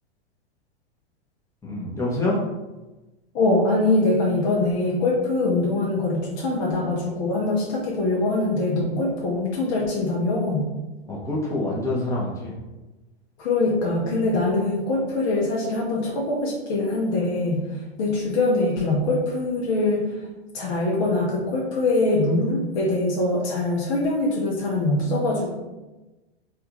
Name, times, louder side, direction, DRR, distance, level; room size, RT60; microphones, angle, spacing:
voice 1, 1.6-2.4 11.1-12.6, left 2 dB, 10° left, -5 dB, 0.9 m, -26 dB
voice 2, 3.3-10.7 13.4-17.6 18.0-20.1 20.5-25.5, left 2 dB, 40° left, -3 dB, 0.7 m, -23 dB
3.4 x 2.4 x 2.8 m, 1.1 s
hypercardioid pair, 105°, 33 cm